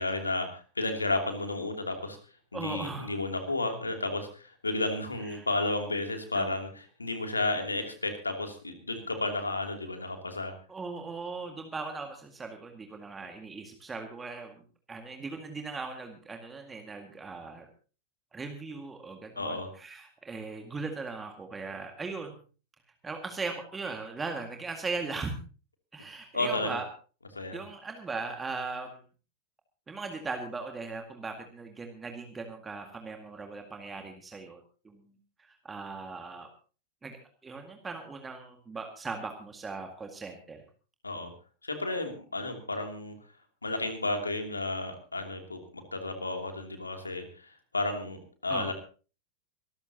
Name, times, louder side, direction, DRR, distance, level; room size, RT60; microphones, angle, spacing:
voice 1, 0.0-2.2 2.5-10.5 19.4-19.7 26.3-26.8 27.3-27.6 41.0-41.3 41.6-43.1 43.6-48.7, left 2 dB, 80° left, 5 dB, 2.9 m, -32 dB
voice 2, 2.5-3.1 5.2-5.5 6.3-6.5 10.7-17.7 18.3-22.4 23.0-25.4 25.9-26.9 27.5-29.0 29.9-34.6 34.8-35.1 35.4-36.5 37.0-37.2 37.4-40.6 48.5-48.7, right 4 dB, 15° right, 4 dB, 2.0 m, -39 dB
24.0 x 14.0 x 2.9 m, 0.36 s
figure-of-eight pair, 90°, 0 cm